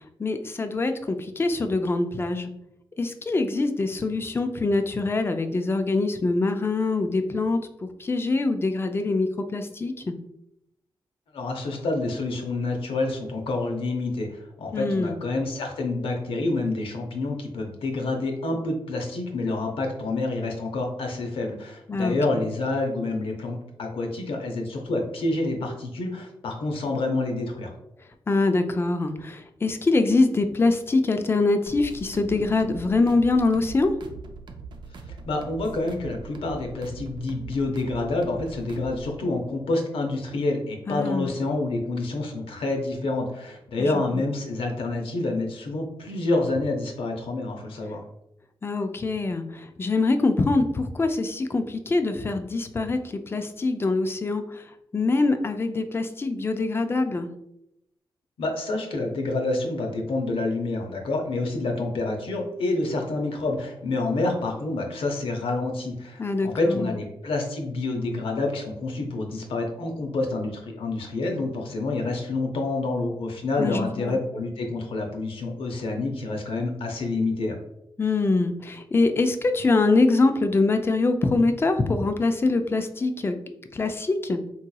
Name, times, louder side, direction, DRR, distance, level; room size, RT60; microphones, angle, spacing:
voice 1, 0.2-2.5 3.0-10.2 14.7-15.2 21.9-22.2 28.3-33.9 40.9-41.3 43.8-44.2 48.6-54.6 54.9-57.3 66.2-66.9 73.6-74.2 78.0-83.4 83.7-84.4, left 3 dB, 25° left, 7 dB, 0.3 m, -24 dB
voice 2, 11.3-27.7 35.3-48.0 58.4-77.6, left 2 dB, 85° left, 2 dB, 0.7 m, -28 dB
sound 1, 31.7-39.2, right 4 dB, 60° right, 0.4 m, -41 dB
3.7 x 2.8 x 2.2 m, 0.81 s
wide cardioid pair, 100°, 9 cm